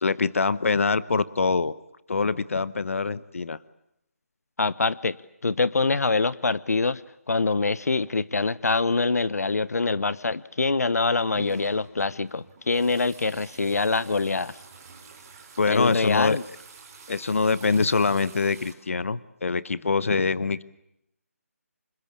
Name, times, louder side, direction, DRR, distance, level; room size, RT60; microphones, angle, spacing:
voice 1, 0.0-1.7 2.1-3.6 15.6-16.4 17.1-20.6, left 4 dB, 60° left, 17 dB, 1.0 m, -24 dB
voice 2, 4.6-5.2 5.4-7.0 7.3-14.5 15.7-16.4, left 3 dB, 90° left, 18 dB, 0.9 m, -24 dB
sound 1, 10.9-18.7, right 5 dB, 15° right, 3.4 m, -47 dB
27.0 x 21.0 x 8.6 m, 0.82 s
hypercardioid pair, 175°, 8 cm